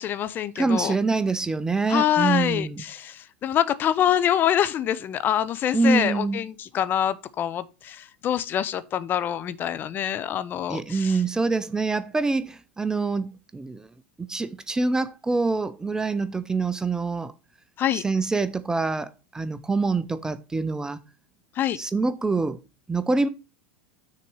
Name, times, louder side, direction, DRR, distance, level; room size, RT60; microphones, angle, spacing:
voice 1, 0.0-0.9 1.9-11.2 17.8-18.0 21.6-21.8, left 10 dB, 35° left, 0.6 m, -25 dB
voice 2, 0.6-2.8 5.7-6.4 10.7-13.9 14.2-17.3 17.9-21.0 21.8-22.6 22.9-23.3, right 3 dB, 10° right, 0.5 m, -25 dB
6.5 x 4.1 x 6.2 m
hypercardioid pair, 90°, 6 cm